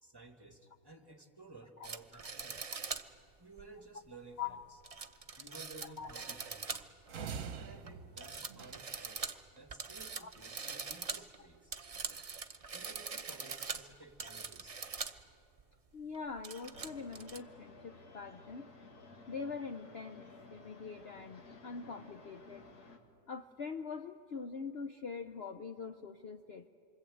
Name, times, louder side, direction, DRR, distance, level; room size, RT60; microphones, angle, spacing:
voice 1, 0.0-2.7 3.4-4.6 5.4-6.8 7.5-11.7 12.7-14.8, right 2 dB, 15° right, 4 dB, 1.8 m, -55 dB
sound 1, 1.8-3.1 3.6-3.7 4.8-7.1 7.4-7.9 8.2-15.2 15.6-15.7 16.1-17.4, right 5 dB, 30° right, 0.7 m, -43 dB
sound 2, 7.1-9.3, right 6 dB, 60° right, 1.3 m, -45 dB
voice 2, 15.9-18.7 19.3-22.7 23.3-26.7, left 5 dB, 50° left, 7 dB, 0.9 m, -43 dB
sound 3, 16.7-23.0, left 3 dB, 85° left, 2.6 m, -55 dB
27.5 x 24.5 x 8.6 m, 2.5 s
omnidirectional pair, 1.6 m